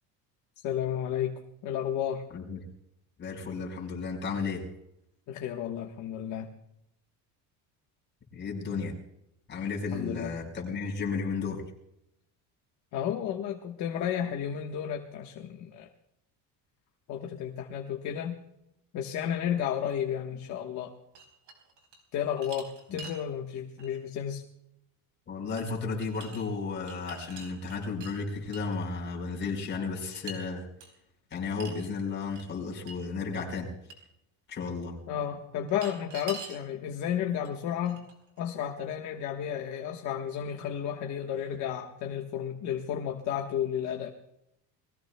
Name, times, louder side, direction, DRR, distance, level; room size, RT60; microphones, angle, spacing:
voice 1, 0.6-1.3 1.6-2.2 5.3-6.5 9.9-10.3 12.9-15.9 17.1-18.4 18.9-20.9 22.1-24.4 35.1-38.0 38.4-44.1, left 9 dB, 50° left, 3 dB, 1.4 m, -32 dB
voice 2, 3.2-4.6 8.3-8.9 9.5-11.6 25.3-30.6 31.3-33.7 34.5-34.9, left 4 dB, 30° left, -1 dB, 4.9 m, -33 dB
sound 1, 21.1-22.0 22.4-23.2 23.8-24.0 25.6-25.7 26.0-26.4 26.8-28.1 28.5-28.8 30.1-30.4 30.8-30.9 31.6-31.8 32.3-32.4 32.9-33.0 33.3-33.4 33.9-34.0 35.7-36.6 37.4-37.5 37.9-38.4, right 4 dB, 50° right, 4.3 m, -44 dB
30.0 x 21.0 x 2.3 m, 0.84 s
cardioid pair, 160°, 37 cm